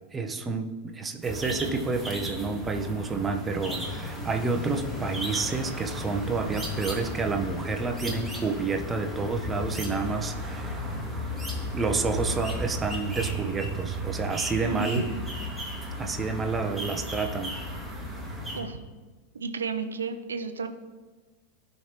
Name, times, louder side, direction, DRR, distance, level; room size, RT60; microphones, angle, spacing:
voice 1, 0.1-10.8 11.7-15.0 16.0-17.6, right 4 dB, 15° right, 4 dB, 0.9 m, -29 dB
sound 1, 1.2-18.6, equal, ahead, 2.1 m, -34 dB
sound 2, 3.6-9.8, left 5 dB, 25° left, 0.6 m, -41 dB
voice 2, 14.6-15.2 18.5-18.8 19.3-20.7, right 5 dB, 70° right, 8 dB, 0.7 m, -32 dB
16.0 x 5.4 x 3.0 m, 1.3 s
figure-of-eight pair, 90°, 0 cm